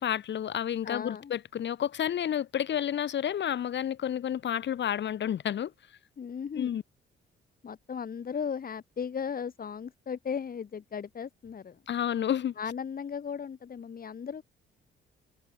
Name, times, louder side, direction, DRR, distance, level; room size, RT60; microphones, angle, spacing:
voice 1, 0.0-5.7 6.6-6.8 11.9-12.5, left 10 dB, 65° left, 6.6 m, -30 dB
voice 2, 0.8-1.3 6.2-6.8 7.6-11.8 12.6-14.4, left 7 dB, 45° left, 5.3 m, -36 dB
cardioid pair, 90°, 20 cm